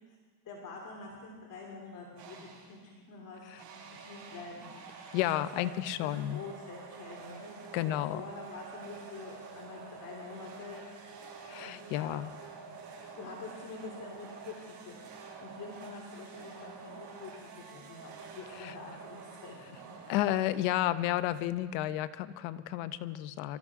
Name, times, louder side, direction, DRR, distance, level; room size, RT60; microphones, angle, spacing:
voice 1, 0.4-3.5 3.9-4.7 5.5-5.7 6.0-10.8 11.6-12.2 12.6-12.8 13.1-19.8, left 4 dB, 40° left, -2 dB, 3.2 m, -46 dB
sound 1, 2.2-2.8 3.6-20.9, right 5 dB, 60° right, 6.4 m, -48 dB
voice 2, 5.1-6.4 7.7-8.2 11.4-12.3 18.5-18.8 20.1-23.6, left 13 dB, 75° left, 12 dB, 0.9 m, -32 dB
25.5 x 14.0 x 3.7 m, 1.5 s
supercardioid pair, 115°, 46 cm